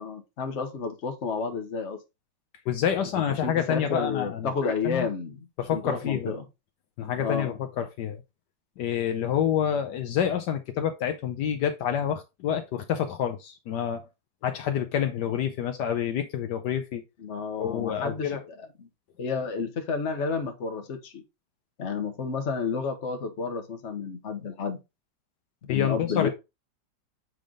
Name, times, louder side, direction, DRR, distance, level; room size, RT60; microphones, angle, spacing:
voice 1, 0.0-2.0 3.4-6.5 7.2-7.5 17.2-18.3 18.8-18.9 19.2-21.2 21.8-24.8 25.6-26.3, left 5 dB, 45° left, 1.3 m, -31 dB
voice 2, 2.7-5.1 5.6-6.3 7.0-8.2 8.8-14.1 14.4-17.0 17.6-18.4 25.7-26.3, left 9 dB, 75° left, 1.3 m, -28 dB
7.7 x 3.4 x 3.7 m
omnidirectional pair, 1.9 m